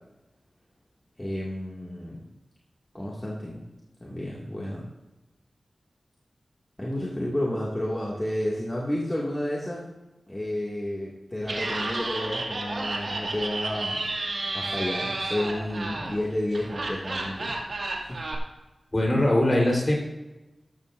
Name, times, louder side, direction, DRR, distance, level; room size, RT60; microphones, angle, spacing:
voice 1, 1.2-2.2 2.9-3.6 4.0-4.9 6.8-9.8 10.3-14.0 14.5-17.6 18.1-18.2, left 1 dB, 20° left, -6 dB, 2.2 m, -31 dB
Laughter, 11.4-18.4, right 2 dB, 70° right, 2.2 m, -32 dB
voice 2, 18.9-19.9, left 1 dB, 35° left, -1 dB, 3.9 m, -21 dB
14.5 x 13.0 x 2.6 m, 1.0 s
wide cardioid pair, 75°, 0 cm